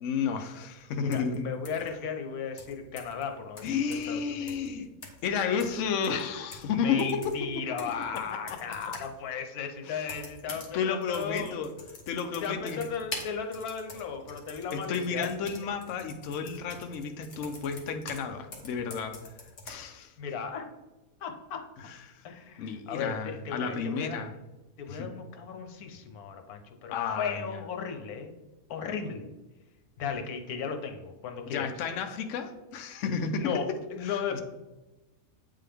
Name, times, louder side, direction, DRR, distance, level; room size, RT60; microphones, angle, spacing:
voice 1, 0.0-1.4 3.6-4.9 5.2-7.5 8.1-8.6 9.8-10.1 10.7-11.7 12.1-12.8 14.7-19.2 19.7-20.1 21.9-22.2 22.6-24.3 24.9-25.1 26.9-27.6 31.5-33.5 34.0-34.4, left 6 dB, 65° left, 5 dB, 0.9 m, -32 dB
voice 2, 1.0-3.8 4.1-4.7 6.7-11.6 12.4-15.3 20.2-20.7 21.2-21.6 22.2-24.2 24.8-28.3 28.7-29.3 30.0-31.7 33.3-34.4, left 6 dB, 90° left, 5 dB, 1.3 m, -36 dB
sound 1, 1.1-1.4 1.6-1.9 2.6-3.2 3.6-4.2 4.5-4.7 5.0-5.3 5.6-6.7 7.0-9.1 10.0-10.7 11.0-18.3 18.5-19.7, left 3 dB, 45° left, 1.3 m, -45 dB
8.2 x 3.8 x 3.4 m, 1.1 s
omnidirectional pair, 1.5 m